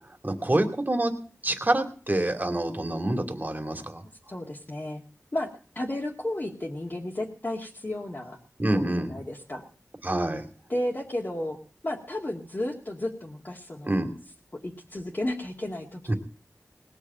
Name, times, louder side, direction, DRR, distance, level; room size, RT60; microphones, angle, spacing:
voice 1, 0.2-1.1 1.4-4.0 8.6-9.1 10.0-10.4 13.8-14.1 16.1-16.2, right 1 dB, 35° right, 5 dB, 2.6 m, -26 dB
voice 2, 4.3-5.0 5.3-5.5 5.7-8.4 8.7-9.6 10.7-11.6 11.8-13.9 14.6-16.1, left 1 dB, 40° left, -2 dB, 2.3 m, -33 dB
19.5 x 6.9 x 8.9 m, 0.42 s
wide cardioid pair, 65°, 5 cm